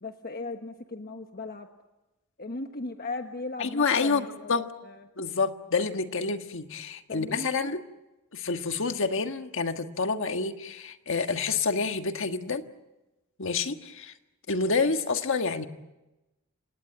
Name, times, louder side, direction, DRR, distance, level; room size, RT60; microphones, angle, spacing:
voice 1, 0.0-1.7 2.4-5.1 7.1-7.7, left 3 dB, 45° left, 5 dB, 1.3 m, -37 dB
voice 2, 3.6-4.7 5.2-7.8 8.3-12.6 13.4-14.1 14.5-15.7, left 4 dB, 65° left, 7 dB, 1.5 m, -28 dB
29.0 x 18.0 x 9.2 m, 1.0 s
head